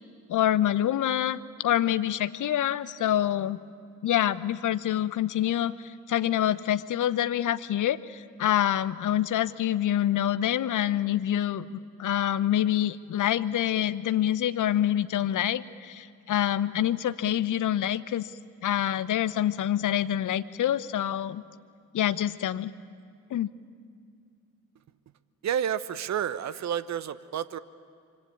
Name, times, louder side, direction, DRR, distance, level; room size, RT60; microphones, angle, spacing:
voice 1, 0.3-3.6 4.0-18.3 18.6-21.4 21.9-22.7 23.3-23.5, left 11 dB, 40° left, 14 dB, 0.9 m, -26 dB
voice 2, 25.4-27.6, right 9 dB, 35° right, 16 dB, 1.0 m, -30 dB
25.5 x 25.0 x 8.7 m, 2.2 s
figure-of-eight pair, 45°, 45 cm